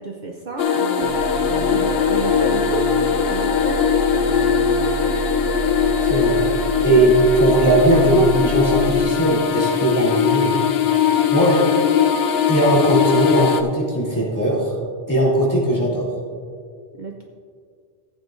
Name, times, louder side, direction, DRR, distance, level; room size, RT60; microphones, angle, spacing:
voice 1, 0.0-4.4 6.9-7.0 7.9-8.3 15.9-16.0 17.0-17.2, right 4 dB, 50° right, 1 dB, 0.7 m, -32 dB
sound 1, 0.6-13.6, left 8 dB, 75° left, 0.9 m, -20 dB
sound 2, 1.0-9.0, right 6 dB, 85° right, 0.9 m, -29 dB
voice 2, 6.0-6.4 6.8-10.6 11.3-11.8 12.5-14.8 15.1-16.1, right 1 dB, 15° left, -6 dB, 2.9 m, -18 dB
14.5 x 9.0 x 2.6 m, 2.1 s
omnidirectional pair, 1.1 m